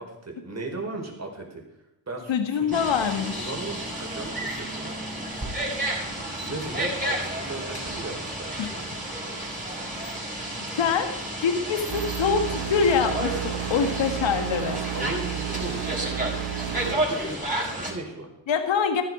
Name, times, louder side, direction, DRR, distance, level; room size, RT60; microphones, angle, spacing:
voice 1, 0.0-1.6 2.1-2.8 3.4-4.9 6.5-8.8 14.9-16.0 16.8-18.3, right 2 dB, 35° right, 1 dB, 4.7 m, -36 dB
voice 2, 2.3-3.5 6.5-6.6 8.6-8.7 10.8-11.1 11.4-14.8 18.5-19.0, left 6 dB, 75° left, 7 dB, 1.8 m, -24 dB
sound 1, 2.7-17.9, right 1 dB, 15° right, 5.8 m, -31 dB
sound 2, 11.9-17.0, right 11 dB, 70° right, 1.6 m, -32 dB
14.5 x 11.5 x 5.0 m, 0.88 s
cardioid pair, 75°, 46 cm